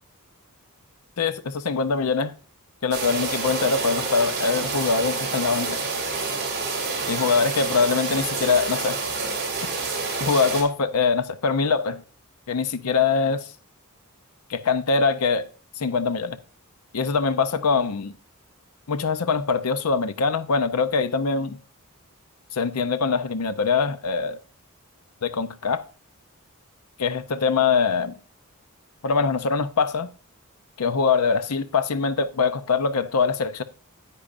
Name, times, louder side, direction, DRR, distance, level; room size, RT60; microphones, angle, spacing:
voice 1, 1.2-2.3 2.8-5.8 7.1-9.0 10.2-12.0 12.5-13.5 14.5-15.5 15.8-16.4 16.9-18.1 18.9-21.6 22.5-24.4 25.2-25.8 27.0-28.2 29.0-30.1 30.8-33.6, left 5 dB, 90° left, 0.7 m, -23 dB
sound 1, 2.9-10.6, right 4 dB, 50° right, 2.6 m, -28 dB
10.0 x 8.5 x 2.6 m
head